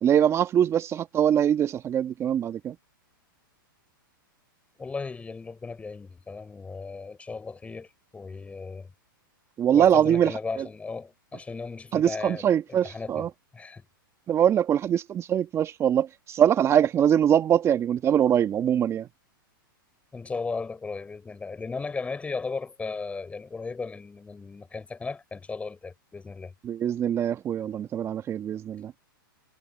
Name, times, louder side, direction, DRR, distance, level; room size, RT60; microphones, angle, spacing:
voice 1, 0.0-2.8 9.6-10.3 10.6-10.7 11.9-13.3 14.3-19.1 26.6-28.9, right 9 dB, 25° right, 1.7 m, -23 dB
voice 2, 4.8-7.9 8.1-8.9 9.7-13.3 13.5-13.8 20.1-26.5, left 4 dB, 10° left, 5.4 m, -36 dB
hypercardioid pair, 130°, 12 cm